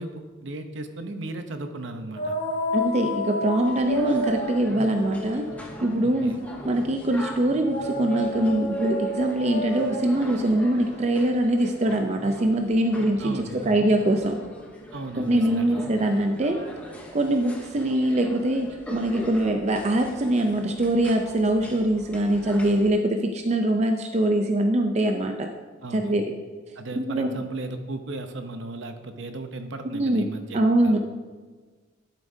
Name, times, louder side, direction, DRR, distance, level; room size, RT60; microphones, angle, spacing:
voice 1, 0.0-2.4 6.0-6.4 13.2-13.9 14.9-15.9 25.8-26.2 26.8-31.0, right 2 dB, 65° right, 7 dB, 0.7 m, -36 dB
sound 1, 2.1-6.8 7.6-12.3, left 1 dB, 40° left, 2.6 m, -31 dB
voice 2, 2.7-5.5 5.8-6.3 6.6-14.4 15.2-16.6 17.1-25.5 25.9-26.2 26.9-27.3 29.9-30.2 30.5-31.0, right 1 dB, 35° right, 4 dB, 0.4 m, -23 dB
sound 2, 3.6-22.9, equal, 5° left, 0.8 m, -42 dB
12.0 x 7.2 x 2.7 m, 1.4 s
head